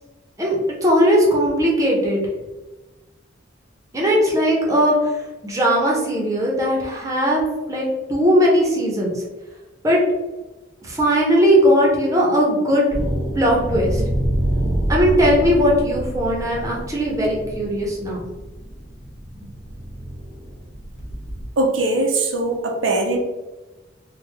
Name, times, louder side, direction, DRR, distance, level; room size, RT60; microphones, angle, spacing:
voice 1, 0.4-2.3 3.9-5.1 5.4-7.4 7.7-9.2 9.8-10.0 10.8-12.8 13.3-14.0 14.9-18.2, equal, 15° right, -3 dB, 0.7 m, -18 dB
sound 1, 12.9-21.4, right 1 dB, 70° left, 1.1 m, -27 dB
voice 2, 21.6-23.2, right 2 dB, 85° right, 2 dB, 0.5 m, -21 dB
3.2 x 2.1 x 3.3 m, 1.1 s
head